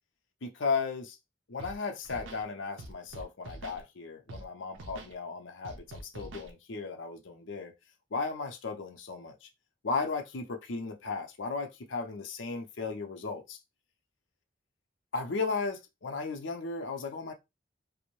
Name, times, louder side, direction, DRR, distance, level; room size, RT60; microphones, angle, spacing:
voice 1, 0.4-1.2 1.5-7.7 8.1-9.5 9.8-13.6 15.1-17.3, left 4 dB, 75° left, 0.6 m, -35 dB
Scratching (performance technique), 1.6-1.8 2.0-2.4 2.8-3.8 4.3-4.4 4.7-5.1 5.6-6.5, right 1 dB, 85° right, 0.6 m, -45 dB
2.6 x 2.0 x 3.0 m
head